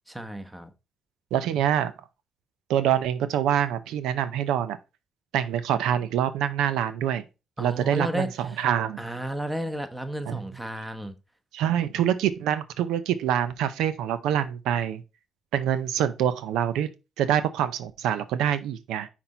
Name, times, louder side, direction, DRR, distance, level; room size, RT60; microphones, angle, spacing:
voice 1, 0.1-0.7 7.6-8.7 9.0-11.2, right 1 dB, 5° right, 1.1 m, -32 dB
voice 2, 1.3-1.9 2.7-4.8 5.3-7.2 7.6-9.0 10.3-10.4 11.5-15.0 15.5-16.9 17.2-19.1, right 10 dB, 90° right, 0.6 m, -25 dB
6.0 x 4.2 x 4.3 m
cardioid pair, 90°, 0 cm